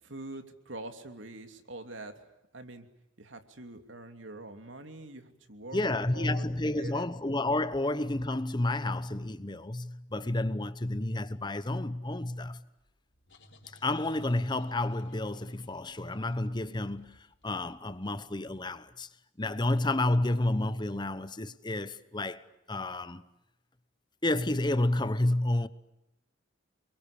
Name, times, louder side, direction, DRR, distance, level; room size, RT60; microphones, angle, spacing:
voice 1, 0.0-2.3 2.5-2.9 3.2-7.1, right 2 dB, 75° right, 3.0 m, -44 dB
voice 2, 5.7-12.6 13.8-19.1 19.4-23.2 24.2-25.7, left 2 dB, 25° left, 1.0 m, -30 dB
sound 1, 12.8-18.3, left 1 dB, 65° left, 4.1 m, -59 dB
29.0 x 23.0 x 8.6 m
head